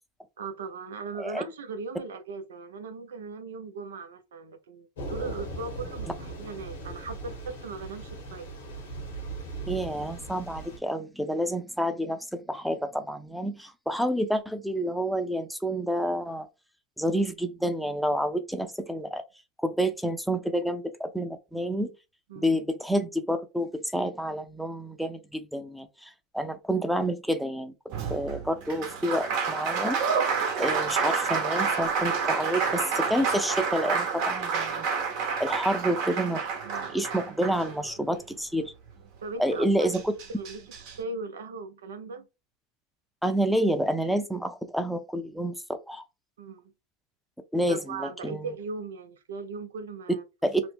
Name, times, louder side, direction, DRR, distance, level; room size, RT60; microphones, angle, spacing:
voice 1, 0.4-8.5 22.3-22.5 36.7-37.0 39.2-40.0 40.3-42.3 46.4-46.7 47.7-50.2, right 4 dB, 80° right, 0.6 m, -38 dB
Thunder / Rain, 5.0-10.8, right 2 dB, 85° left, 1.2 m, -38 dB
voice 2, 9.7-16.5 17.0-19.2 19.6-21.9 22.4-27.7 28.1-30.0 30.6-34.9 35.4-36.4 36.9-38.7 39.4-40.1 43.2-46.0 47.5-48.5 50.4-50.6, equal, ahead, 0.6 m, -29 dB
Applause, 27.9-38.2 39.6-39.7 39.9-40.9, right 5 dB, 60° right, 0.9 m, -29 dB
2.9 x 2.1 x 3.4 m
hypercardioid pair, 90°, 0 cm